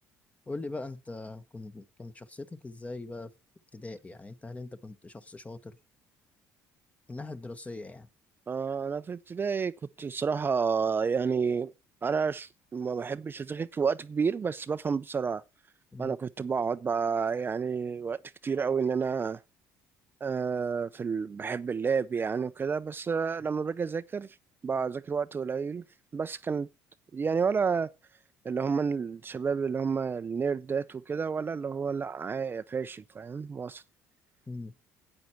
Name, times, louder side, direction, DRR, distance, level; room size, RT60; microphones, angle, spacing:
voice 1, 0.5-3.3 3.7-5.8 7.1-8.1 15.9-16.1 34.5-34.7, left 2 dB, 20° left, 1.2 m, -41 dB
voice 2, 8.5-9.7 10.0-11.7 12.0-15.4 16.0-19.4 20.2-24.4 24.6-25.8 26.1-26.7 27.1-27.9 28.4-33.8, right 5 dB, 30° right, 0.5 m, -30 dB
9.2 x 8.8 x 4.5 m
supercardioid pair, 75°, 7 cm